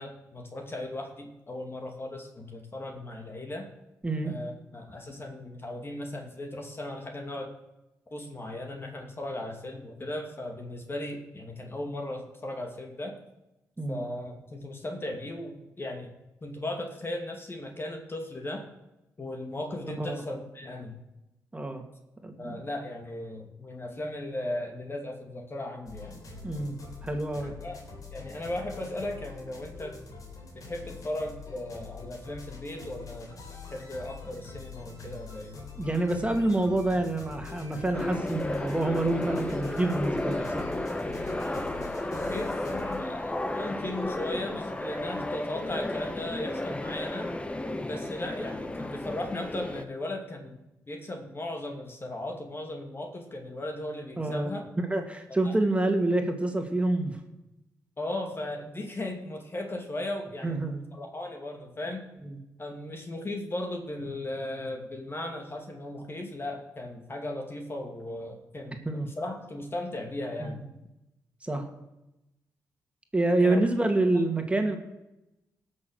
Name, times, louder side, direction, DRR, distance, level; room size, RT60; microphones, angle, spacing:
voice 1, 0.0-3.7 4.2-7.5 8.1-13.2 13.9-16.1 16.4-18.6 19.2-21.0 22.4-26.2 27.4-27.8 28.1-30.0 30.5-33.3 33.7-35.6 42.1-47.3 47.9-50.6 50.9-54.6 55.4-55.5 58.0-62.0 62.6-68.8 69.2-70.6 73.4-73.6, left 1 dB, 35° left, 3 dB, 2.4 m, -37 dB
voice 2, 4.0-4.3 13.8-14.0 20.0-20.2 21.5-21.8 22.2-22.6 26.4-26.8 27.0-27.5 35.8-40.7 54.2-54.5 54.8-57.2 60.4-60.8 62.2-62.4 68.8-69.1 70.4-70.5 71.4-71.7 73.1-74.8, right 2 dB, 20° right, 4 dB, 2.4 m, -27 dB
sound 1, 25.9-43.0, left 4 dB, 60° left, 3.6 m, -44 dB
sound 2, 37.9-49.8, left 1 dB, 20° left, 1.2 m, -33 dB
17.5 x 6.6 x 6.6 m, 0.94 s
supercardioid pair, 55°, 7 cm